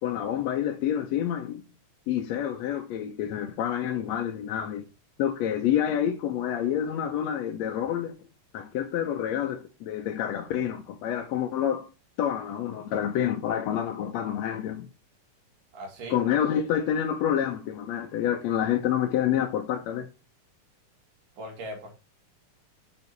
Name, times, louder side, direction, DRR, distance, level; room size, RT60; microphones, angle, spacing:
voice 1, 0.0-1.6 2.1-4.8 5.2-8.1 8.5-11.9 12.2-14.9 16.1-20.1, left 10 dB, 70° left, 1.7 m, -28 dB
voice 2, 15.7-16.2 21.4-21.9, right 1 dB, 80° right, 3.7 m, -39 dB
6.7 x 4.6 x 5.3 m
omnidirectional pair, 3.7 m